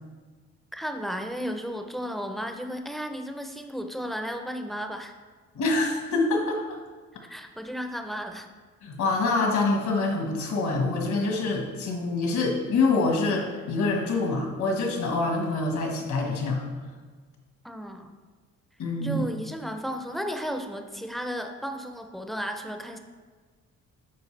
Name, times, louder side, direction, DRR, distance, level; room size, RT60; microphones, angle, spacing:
voice 1, 0.7-5.1 7.2-8.5 17.6-18.1 19.0-23.0, equal, ahead, 6 dB, 0.6 m, -34 dB
voice 2, 5.5-6.6 8.8-16.6 18.8-19.2, left 3 dB, 70° left, 1 dB, 1.5 m, -25 dB
9.2 x 4.5 x 3.3 m, 1.5 s
cardioid pair, 90°, 30 cm